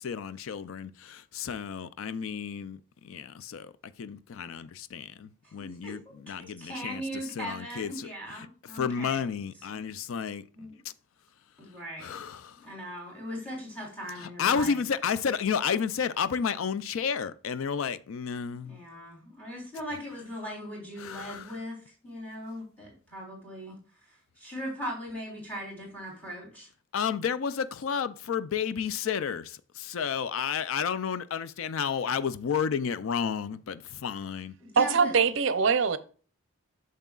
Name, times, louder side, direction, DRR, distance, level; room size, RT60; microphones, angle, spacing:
voice 1, 0.0-3.7 4.0-8.5 8.7-10.4 10.8-10.9 12.0-12.6 14.2-18.8 21.0-21.6 26.9-34.5, left 7 dB, 80° left, 0.4 m, -31 dB
voice 2, 5.6-6.2 6.6-9.2 10.6-10.8 11.6-12.2 12.6-14.8 18.6-23.8 24.4-26.7 34.6-35.1, equal, 10° left, 3.4 m, -39 dB
voice 3, 34.8-36.0, right 5 dB, 65° right, 0.6 m, -23 dB
9.0 x 6.5 x 2.4 m
head